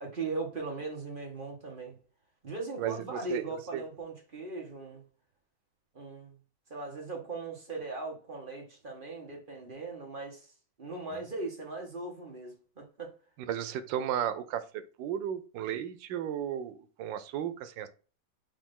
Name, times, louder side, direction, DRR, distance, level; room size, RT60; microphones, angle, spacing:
voice 1, 0.0-2.0 2.4-5.0 5.9-6.3 6.7-10.5 10.8-13.1, right 3 dB, 35° right, 1.2 m, -39 dB
voice 2, 2.8-3.4 3.7-3.8 13.4-14.6 15.0-17.9, right 10 dB, 90° right, 1.3 m, -34 dB
5.2 x 2.7 x 3.6 m
omnidirectional pair, 1.9 m